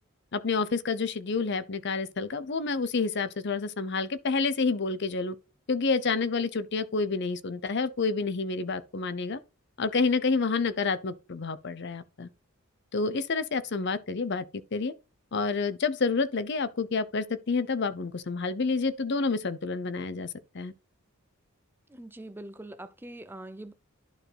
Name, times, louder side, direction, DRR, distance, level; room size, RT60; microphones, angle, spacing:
voice 1, 0.3-5.4 5.7-9.4 9.8-12.3 12.9-14.4 14.7-14.9 15.3-20.7, left 4 dB, 50° left, 0.6 m, -29 dB
voice 2, 21.9-23.7, right 1 dB, 10° right, 0.5 m, -43 dB
11.5 x 4.5 x 3.3 m
head